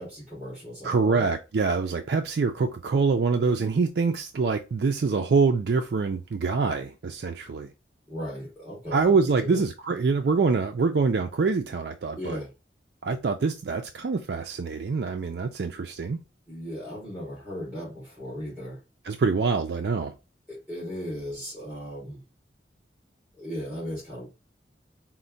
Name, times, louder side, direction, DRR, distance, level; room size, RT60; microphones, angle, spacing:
voice 1, 0.0-1.2 8.1-9.6 12.2-12.5 16.5-18.8 20.5-22.2 23.3-24.3, equal, 10° right, 2.6 m, -36 dB
voice 2, 0.8-7.7 8.9-12.4 13.0-16.2 19.0-20.1, right 4 dB, 60° right, 0.4 m, -25 dB
4.4 x 2.1 x 3.8 m
head